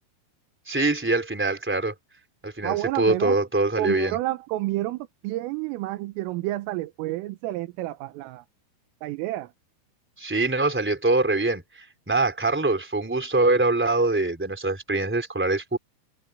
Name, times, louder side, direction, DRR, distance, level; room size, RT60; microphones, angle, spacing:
voice 1, 0.7-1.9 2.4-4.2 10.2-15.8, right 2 dB, 5° right, 2.4 m, -24 dB
voice 2, 2.6-3.4 3.8-8.4 9.0-9.5, right 17 dB, 85° right, 3.7 m, -30 dB
omnidirectional pair, 5.7 m